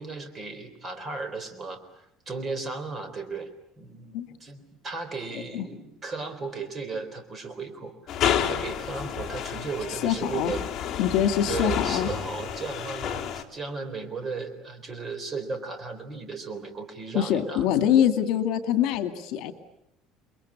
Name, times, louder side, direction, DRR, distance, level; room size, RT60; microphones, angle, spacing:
voice 1, 0.0-1.8 2.3-3.5 3.8-10.6 11.5-17.6, right 4 dB, 25° right, 8 dB, 3.9 m, -35 dB
voice 2, 5.3-5.7 10.0-10.5 11.0-12.1 17.1-19.5, left 10 dB, 65° left, 7 dB, 2.3 m, -24 dB
sound 1, 8.1-13.4, left 9 dB, 35° left, 2.9 m, -30 dB
30.0 x 22.5 x 8.6 m, 0.80 s
cardioid pair, 160°, 0 cm